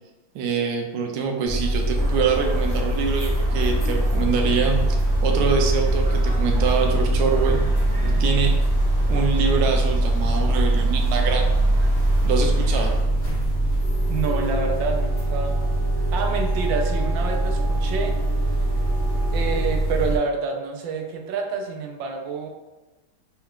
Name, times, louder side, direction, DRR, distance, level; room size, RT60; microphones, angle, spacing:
voice 1, 0.3-5.0 5.2-7.6 8.0-8.6 9.1-11.5 12.2-13.0, right 5 dB, 90° right, 2 dB, 0.8 m, -25 dB
sound 1, 1.5-20.2, right 1 dB, 60° left, 0.3 m, -22 dB
sound 2, 1.9-13.0, left 1 dB, 30° right, 1.2 m, -31 dB
sound 3, 13.8-19.7, right 1 dB, 50° right, 1.4 m, -39 dB
voice 2, 14.1-15.6 16.1-18.1 19.3-22.5, right 4 dB, 75° right, 2 dB, 1.2 m, -28 dB
4.3 x 2.3 x 3.5 m, 1.1 s
omnidirectional pair, 2.3 m